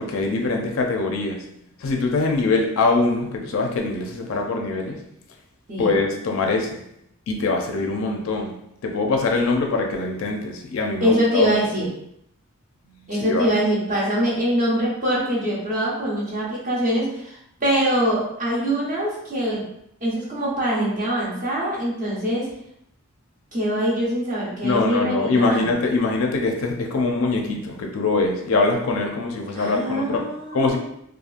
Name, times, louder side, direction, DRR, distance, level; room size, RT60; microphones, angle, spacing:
voice 1, 0.0-1.5 1.8-5.0 5.8-6.8 7.3-11.9 13.1-13.5 24.6-30.8, left 3 dB, 70° left, 2 dB, 0.4 m, -23 dB
voice 2, 11.0-11.9 13.1-19.6 20.0-22.5 23.5-25.7 29.5-30.8, equal, 35° right, -5 dB, 0.8 m, -23 dB
2.8 x 2.3 x 2.4 m, 0.76 s
head